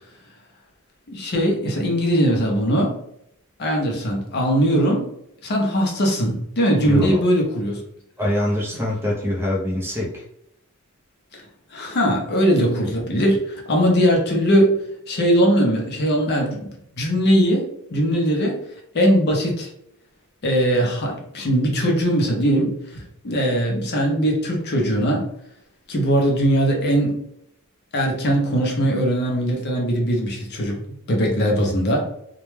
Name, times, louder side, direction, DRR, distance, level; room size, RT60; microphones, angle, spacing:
voice 1, 1.1-3.0 3.6-5.1 5.4-7.8 11.3-11.4 11.7-14.8 15.1-16.7 17.0-18.6 18.9-19.7 20.4-25.3 25.9-27.2 27.9-30.8 31.1-32.0, equal, 50° left, 0 dB, 0.6 m, -20 dB
voice 2, 6.8-7.2 8.2-10.2, left 1 dB, 10° right, -3 dB, 0.4 m, -24 dB
2.2 x 2.1 x 3.0 m, 0.75 s
head